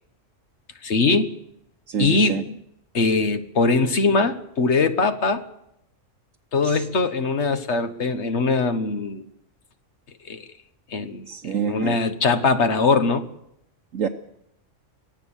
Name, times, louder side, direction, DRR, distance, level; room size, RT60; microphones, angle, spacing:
voice 1, 0.8-1.3 2.0-2.6 2.9-5.5 6.5-9.2 10.2-10.5 10.9-11.2 11.6-13.3, left 3 dB, 60° left, 9 dB, 1.5 m, -21 dB
voice 2, 1.9-2.4 6.6-6.8 11.3-12.0 13.9-14.1, right 7 dB, 85° right, 1 dB, 1.4 m, -27 dB
24.0 x 16.5 x 7.2 m, 0.80 s
omnidirectional pair, 1.3 m